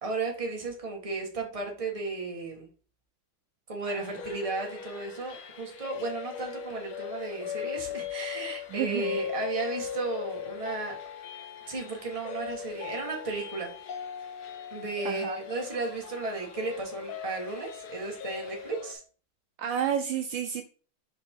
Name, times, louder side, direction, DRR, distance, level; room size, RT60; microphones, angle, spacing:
voice 1, 0.0-2.7 3.7-11.0 11.7-13.7 14.7-19.0, right 3 dB, 20° right, 1 dB, 1.3 m, -34 dB
sound 1, 3.9-18.9, left 8 dB, 75° left, 1.8 m, -39 dB
voice 2, 8.7-9.1 15.0-15.4 19.6-20.6, right 9 dB, 75° right, 7 dB, 1.2 m, -30 dB
5.6 x 5.2 x 3.7 m, 0.40 s
omnidirectional pair, 2.3 m